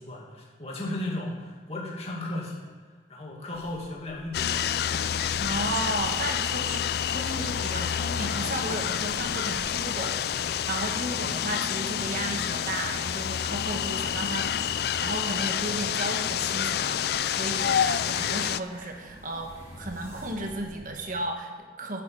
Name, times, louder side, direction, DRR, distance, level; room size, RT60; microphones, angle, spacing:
voice 1, 0.0-2.7 3.1-4.7 4.9-5.2, left 1 dB, 35° left, -3 dB, 2.3 m, -35 dB
sound 1, 3.5-21.1, equal, 15° right, 3.2 m, -49 dB
sound 2, 4.3-18.6, left 9 dB, 60° left, 0.4 m, -28 dB
voice 2, 5.4-22.0, right 1 dB, 50° right, 3 dB, 1.4 m, -34 dB
15.5 x 8.4 x 4.8 m, 1.5 s
head